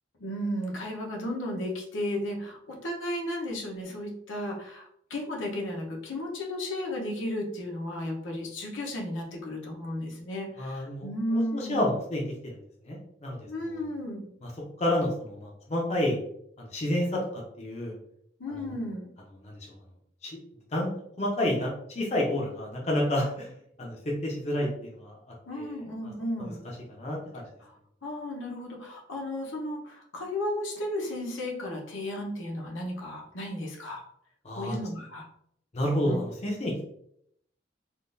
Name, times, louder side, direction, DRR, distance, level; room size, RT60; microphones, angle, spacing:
voice 1, 0.2-11.9 13.4-14.3 18.4-19.1 25.5-26.6 27.6-34.0 34.5-35.3 36.0-36.2, left 1 dB, 75° left, -1 dB, 0.8 m, -34 dB
voice 2, 10.6-12.6 12.8-13.9 14.8-16.2 16.6-17.9 18.5-18.7 19.4-19.6 20.2-20.4 20.7-20.9 21.2-23.5 23.8-25.2 25.6-25.7 26.4-26.5 26.9-27.4 34.4-34.7 35.7-36.8, left 1 dB, 30° left, -2 dB, 0.6 m, -30 dB
3.7 x 2.4 x 2.5 m, 0.71 s
head